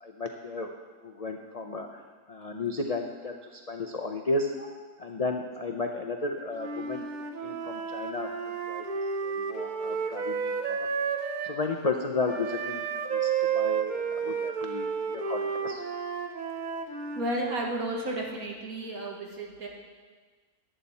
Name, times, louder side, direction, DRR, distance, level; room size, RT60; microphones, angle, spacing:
voice 1, 0.0-0.7 1.0-1.9 2.3-4.5 5.0-7.1 7.4-8.8 9.2-10.9 11.4-12.8 13.1-15.8, left 3 dB, 85° left, 3 dB, 0.3 m, -33 dB
Wind instrument woodwind instrument, 6.6-11.6 12.3-17.3, right 6 dB, 45° right, 0.7 m, -31 dB
voice 2, 17.2-19.7, right 1 dB, 70° right, 0 dB, 2.0 m, -32 dB
11.5 x 9.1 x 4.2 m, 1.4 s
omnidirectional pair, 1.6 m